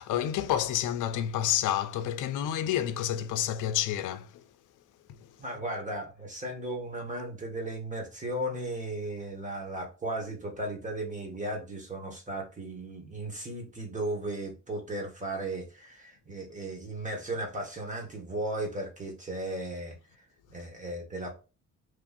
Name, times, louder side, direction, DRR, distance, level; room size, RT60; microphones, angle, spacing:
voice 1, 0.0-4.4 5.1-5.2, left 11 dB, 85° left, 0.6 m, -29 dB
voice 2, 5.4-20.0 20.5-21.3, right 1 dB, 25° right, 1.6 m, -36 dB
3.2 x 2.6 x 4.0 m
cardioid pair, 90°, 30 cm